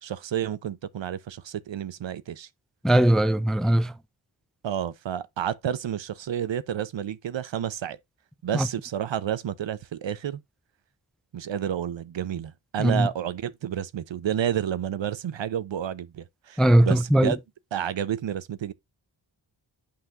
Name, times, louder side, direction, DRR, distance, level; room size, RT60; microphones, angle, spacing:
voice 1, 0.0-2.5 4.6-8.0 8.4-10.4 11.3-17.4 17.7-18.7, right 9 dB, 70° right, 0.7 m, -30 dB
voice 2, 2.8-3.9 8.5-8.7 12.8-13.1 16.6-17.3, right 1 dB, ahead, 0.4 m, -20 dB
8.6 x 5.6 x 2.5 m
wide cardioid pair, 85°, 46 cm